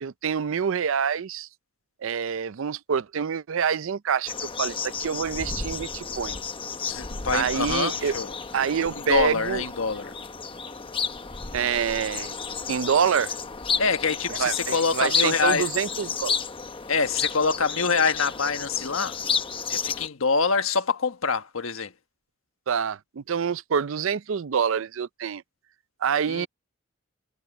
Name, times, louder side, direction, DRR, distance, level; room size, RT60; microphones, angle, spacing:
voice 1, 0.0-1.5 2.0-6.4 7.3-8.1 8.5-9.6 11.5-12.3 12.7-13.3 14.4-16.4 22.7-25.4 26.0-26.5, right 7 dB, 65° right, 0.4 m, -26 dB
sound 1, 4.3-20.1, left 5 dB, 25° left, 0.8 m, -32 dB
voice 2, 6.8-8.3 9.0-10.1 13.8-15.7 16.9-19.2 19.7-21.9 26.3-26.5, left 5 dB, 75° left, 1.4 m, -25 dB
head